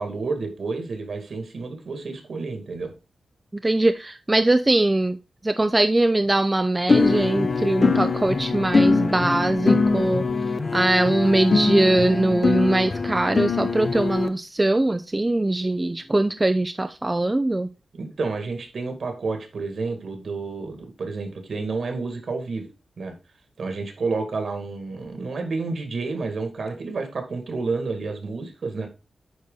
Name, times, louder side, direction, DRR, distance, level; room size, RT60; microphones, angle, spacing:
voice 1, 0.0-2.9 17.9-22.7 23.0-23.1 23.6-28.9, right 4 dB, 65° right, 6 dB, 2.1 m, -30 dB
voice 2, 3.6-5.2 5.4-10.2 10.7-17.7, right 2 dB, 20° right, 9 dB, 0.4 m, -21 dB
sound 1, 6.9-14.3, left 4 dB, 40° left, 0.7 m, -22 dB
9.5 x 4.2 x 3.9 m, 0.29 s
wide cardioid pair, 110°, 0 cm